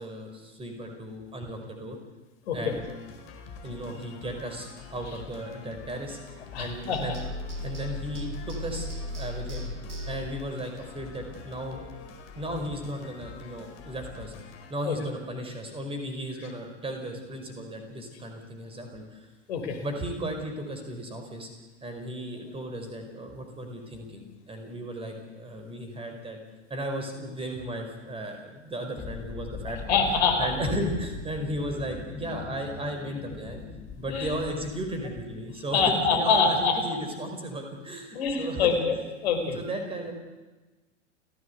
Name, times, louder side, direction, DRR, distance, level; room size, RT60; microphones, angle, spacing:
voice 1, 0.0-2.0 2.5-2.9 3.6-6.2 6.6-7.2 7.6-8.9 9.2-9.7 10.1-11.8 12.3-14.3 14.7-19.3 19.8-21.5 21.8-26.4 26.7-30.0 30.4-33.6 34.0-38.8 39.5-40.1, equal, 15° right, 4 dB, 5.1 m, -35 dB
sound 1, 2.7-14.7, left 5 dB, 40° left, 4.8 m, -45 dB
voice 2, 6.5-7.0 14.8-15.0 19.5-19.8 29.9-30.5 34.1-34.3 35.7-36.7 38.1-39.0 39.2-39.6, left 5 dB, 55° left, 5 dB, 4.7 m, -24 dB
sound 2, 6.9-10.5, left 1 dB, 70° right, 4.4 m, -36 dB
sound 3, 29.0-35.8, left 5 dB, 20° left, 2.5 m, -42 dB
30.0 x 16.0 x 8.2 m, 1.2 s
figure-of-eight pair, 95°, 38 cm